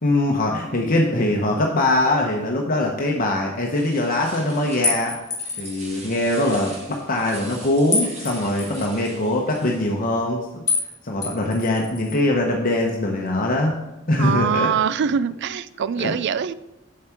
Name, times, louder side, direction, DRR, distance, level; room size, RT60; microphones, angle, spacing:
voice 1, 0.0-5.2 5.6-10.6 11.0-13.7 14.1-14.7 16.0-16.1, left 1 dB, 45° left, 0 dB, 1.0 m, -22 dB
sound 1, 3.7-5.1 5.4-10.0, right 2 dB, 35° right, 1.7 m, -42 dB
sound 2, 4.8-5.8 7.9-8.9 10.7-10.9 11.2-12.2, left 4 dB, 20° left, 2.0 m, -26 dB
voice 2, 14.2-16.5, right 7 dB, 60° right, 16 dB, 0.4 m, -23 dB
7.7 x 7.3 x 4.5 m, 0.98 s
head